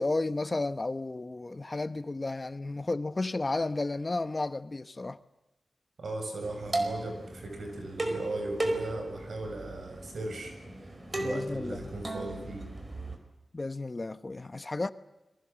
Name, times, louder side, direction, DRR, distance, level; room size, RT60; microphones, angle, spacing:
voice 1, 0.0-5.2 11.2-11.9 13.5-14.9, left 2 dB, 35° left, 1.0 m, -32 dB
voice 2, 6.0-10.5 10.8-12.7, right 2 dB, 80° right, 7.3 m, -38 dB
sound 1, 6.4-13.2, right 1 dB, 35° right, 4.6 m, -36 dB
29.0 x 23.0 x 7.6 m
wide cardioid pair, 95°, 0 cm